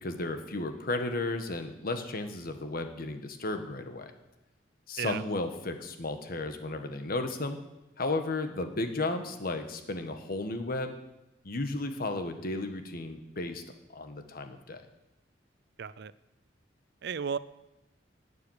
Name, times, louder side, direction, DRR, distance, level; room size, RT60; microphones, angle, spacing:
voice 1, 0.0-4.1 4.9-7.6 8.0-10.9 11.4-13.6 13.9-14.8, left 2 dB, 55° left, 7 dB, 1.3 m, -34 dB
voice 2, 15.8-16.1 17.0-17.4, right 7 dB, 60° right, 17 dB, 0.5 m, -33 dB
11.5 x 6.9 x 9.8 m, 0.94 s
head